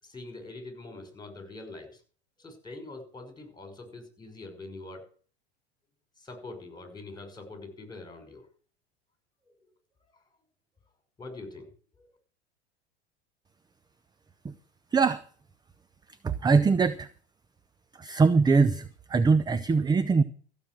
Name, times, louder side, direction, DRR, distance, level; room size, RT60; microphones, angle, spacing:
voice 1, 0.0-2.0 2.4-5.0 6.2-8.5 9.4-9.7 11.2-11.7 12.0-12.1, left 2 dB, 10° left, 5.8 m, -44 dB
voice 2, 16.2-17.1 18.0-20.2, right 4 dB, 10° right, 0.6 m, -22 dB
15.0 x 7.4 x 7.7 m
hypercardioid pair, 90°, 33 cm